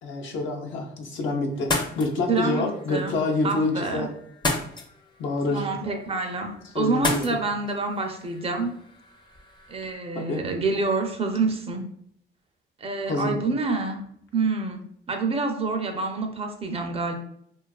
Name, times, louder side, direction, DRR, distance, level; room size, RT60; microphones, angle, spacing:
voice 1, 0.0-4.1 5.2-5.7 6.7-7.2 10.1-10.4 13.1-13.4, left 2 dB, 75° left, 2 dB, 0.6 m, -27 dB
sound 1, 1.5-9.9, left 2 dB, 20° left, 0.5 m, -34 dB
voice 2, 2.3-4.1 5.5-8.8 9.7-11.8 12.8-14.0 14.3-14.8 15.1-17.1, right 3 dB, 30° right, 4 dB, 0.4 m, -27 dB
2.5 x 2.3 x 2.3 m, 0.69 s
cardioid pair, 90°, 20 cm